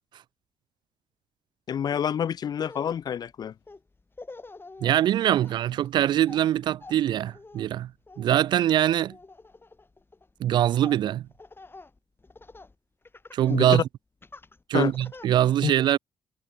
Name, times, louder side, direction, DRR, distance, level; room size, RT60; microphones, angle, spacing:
voice 1, 1.7-3.5 13.5-13.8 14.7-14.9 15.6-15.7, left 8 dB, 50° left, 0.6 m, -27 dB
Laughter, 2.6-12.8 13.1-13.8 14.2-15.3, left 3 dB, 25° left, 2.7 m, -48 dB
voice 2, 4.8-7.9 8.2-9.2 10.4-11.3 13.3-13.8 14.7-16.0, right 11 dB, 55° right, 0.4 m, -23 dB
figure-of-eight pair, 40°, 9 cm